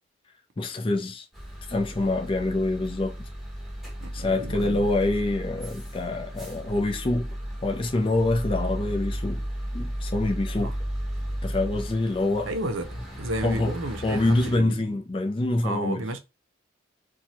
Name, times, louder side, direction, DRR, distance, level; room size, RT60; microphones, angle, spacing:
voice 1, 0.6-1.3 1.7-3.3 4.1-7.3 7.6-9.4 9.7-10.7 11.4-12.5 13.4-13.7 14.0-16.1, left 2 dB, 25° left, 0.4 m, -26 dB
sound 1, 1.3-14.6, equal, ahead, 0.9 m, -34 dB
voice 2, 4.0-4.8 10.6-10.7 12.4-12.9 13.2-14.9 15.6-16.2, right 1 dB, 80° right, 0.6 m, -32 dB
2.7 x 2.2 x 2.9 m
head